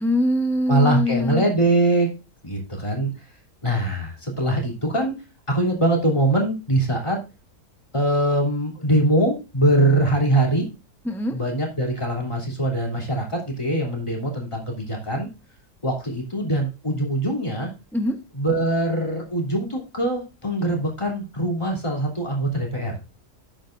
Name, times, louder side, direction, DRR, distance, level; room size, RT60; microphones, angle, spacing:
voice 1, 0.0-1.5 11.0-11.4 17.9-18.2, left 1 dB, ahead, 5 dB, 0.5 m, -23 dB
voice 2, 0.7-2.1 2.4-3.1 3.6-5.1 5.5-7.2 7.9-10.7 11.3-15.3 15.8-17.7 18.4-22.9, right 1 dB, 20° left, 0 dB, 3.1 m, -22 dB
12.5 x 8.7 x 2.6 m, 0.30 s
omnidirectional pair, 1.7 m